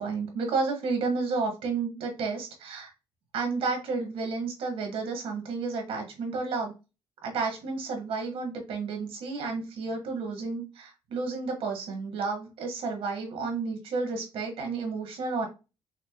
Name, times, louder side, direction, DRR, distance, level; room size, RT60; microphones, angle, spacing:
voice 1, 0.0-2.9 3.3-6.7 7.2-15.5, right 4 dB, 80° right, 2 dB, 1.8 m, -31 dB
5.9 x 2.2 x 3.0 m, 0.28 s
cardioid pair, 110°, 10 cm